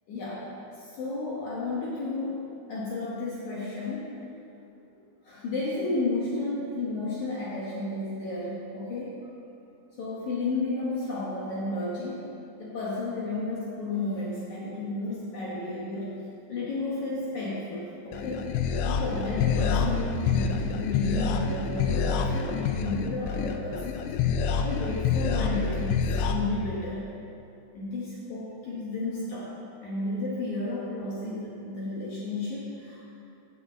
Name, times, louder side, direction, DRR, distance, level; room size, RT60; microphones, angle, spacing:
voice 1, 0.1-0.5 0.8-4.2 5.2-9.2 10.0-12.3 12.6-16.1 16.5-18.5 18.9-24.0 24.6-27.0 27.7-29.5 29.8-33.2, left 2 dB, 65° left, -7 dB, 2.0 m, -32 dB
sound 1, 18.1-26.3, left 6 dB, 85° left, 2.7 m, -27 dB
7.2 x 6.7 x 7.2 m, 2.7 s
omnidirectional pair, 4.8 m